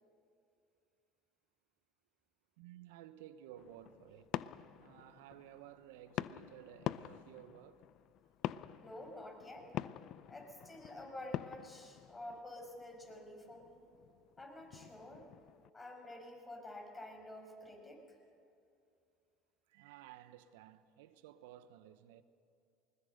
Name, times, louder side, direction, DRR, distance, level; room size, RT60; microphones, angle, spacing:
voice 1, 2.6-4.4 4.8-7.9 19.7-22.2, right 12 dB, 80° right, 1.0 m, -55 dB
sound 1, 3.6-15.7, left 12 dB, 60° left, 0.5 m, -46 dB
voice 2, 8.8-10.0 10.3-13.8 14.4-15.3 15.7-18.2, left 1 dB, 20° left, 5.7 m, -50 dB
20.5 x 20.5 x 6.6 m
hypercardioid pair, 80°, 0 cm